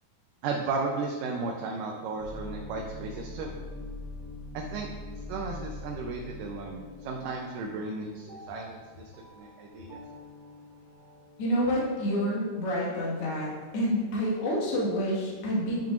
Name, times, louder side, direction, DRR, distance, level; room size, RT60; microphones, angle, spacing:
voice 1, 0.4-3.5 4.5-4.9 5.3-10.0, right 4 dB, 85° right, 0 dB, 2.3 m, -34 dB
sound 1, 2.2-13.7, left 1 dB, 45° right, 0.9 m, -44 dB
voice 2, 11.4-15.9, equal, 50° left, -5 dB, 2.4 m, -28 dB
10.5 x 5.8 x 2.5 m, 1.5 s
omnidirectional pair, 3.8 m